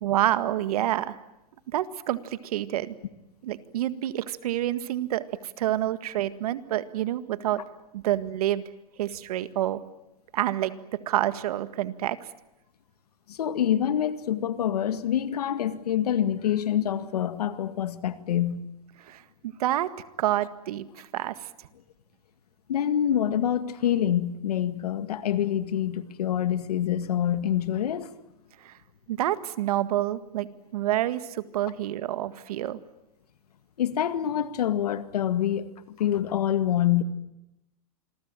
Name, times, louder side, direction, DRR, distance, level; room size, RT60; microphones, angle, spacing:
voice 1, 0.0-1.2 1.7-2.9 3.4-7.6 7.9-8.6 9.0-9.8 10.3-12.2 19.0-19.9 20.2-21.4 28.6-28.7 29.1-32.8, right 13 dB, 75° right, 1.8 m, -28 dB
voice 2, 13.3-18.6 22.7-28.1 33.8-37.0, left 10 dB, 85° left, 2.0 m, -26 dB
27.0 x 22.5 x 9.0 m
hypercardioid pair, 120°, 19 cm